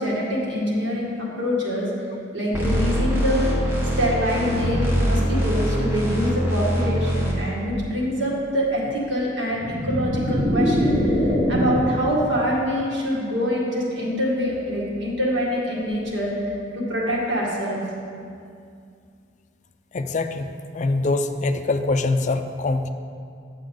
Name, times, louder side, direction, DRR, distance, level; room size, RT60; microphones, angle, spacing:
voice 1, 0.0-1.9 2.3-3.5 4.0-16.3 16.7-17.8, equal, 85° right, -5 dB, 2.0 m, -25 dB
sound 1, 2.5-7.3, equal, 15° right, 1.3 m, -23 dB
sound 2, 9.5-12.0, equal, 55° right, 2.3 m, -22 dB
voice 2, 19.9-22.9, left 3 dB, 40° left, 8 dB, 0.4 m, -24 dB
8.7 x 7.2 x 3.9 m, 2.3 s
head